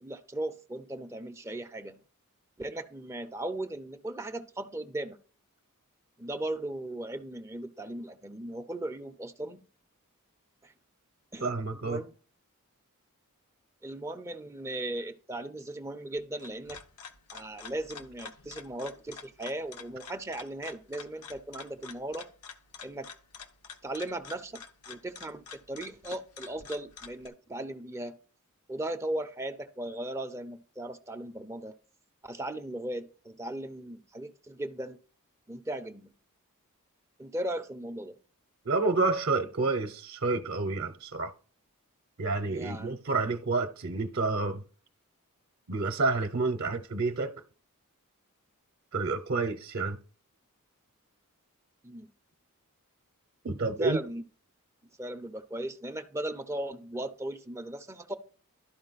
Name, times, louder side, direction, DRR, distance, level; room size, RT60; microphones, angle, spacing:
voice 1, 0.0-2.0 2.6-5.2 6.2-9.6 10.6-10.7 11.3-12.1 13.8-16.8 17.3-22.3 22.8-23.1 23.8-28.1 28.7-31.7 32.2-35.0 35.5-36.1 37.2-38.1 42.5-43.0 51.8-52.1 53.8-54.2 55.0-58.2, right 1 dB, 15° right, 0.5 m, -37 dB
voice 2, 11.4-12.0 38.7-41.3 42.2-44.6 45.7-47.4 48.9-50.0 53.4-54.0, right 3 dB, 50° right, 0.7 m, -29 dB
sound 1, 16.2-27.3, left 6 dB, 85° left, 1.0 m, -48 dB
12.0 x 4.8 x 4.0 m
head